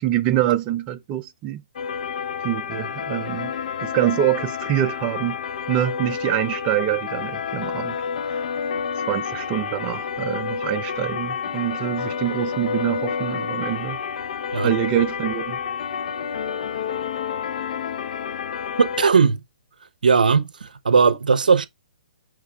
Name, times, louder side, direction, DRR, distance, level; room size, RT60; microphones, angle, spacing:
voice 1, 0.0-1.6 2.4-3.5 3.8-5.4 5.7-8.0 8.3-8.4 9.0-14.0 14.6-15.6, right 12 dB, 25° right, 0.5 m, -25 dB
sound 1, 1.8-19.1, left 7 dB, 60° left, 0.6 m, -29 dB
voice 2, 18.8-19.4 20.0-21.7, right 5 dB, 85° right, 0.6 m, -18 dB
6.5 x 3.2 x 2.2 m
hypercardioid pair, 140°, 4 cm